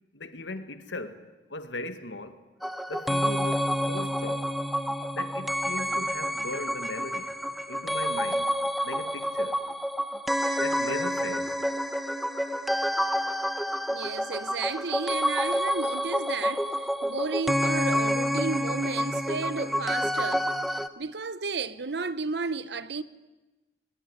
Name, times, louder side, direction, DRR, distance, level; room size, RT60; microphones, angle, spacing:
voice 1, 0.1-1.2 1.5-2.4 2.9-4.5 5.1-7.3 7.7-8.5 8.8-9.6 10.6-11.6, left 2 dB, 75° left, 1.8 m, -38 dB
sound 1, 2.6-20.9, equal, ahead, 0.8 m, -28 dB
voice 2, 13.9-23.0, right 4 dB, 65° right, 0.9 m, -33 dB
22.0 x 21.0 x 9.7 m
head